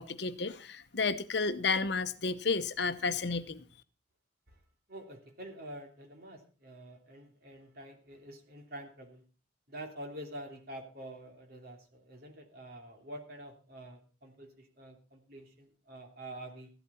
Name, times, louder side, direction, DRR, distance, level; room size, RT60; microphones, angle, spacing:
voice 1, 0.0-3.6, left 4 dB, 60° left, 0.8 m, -32 dB
voice 2, 4.9-9.2 9.7-16.7, right 1 dB, 50° right, 2.9 m, -47 dB
14.5 x 12.0 x 4.2 m
head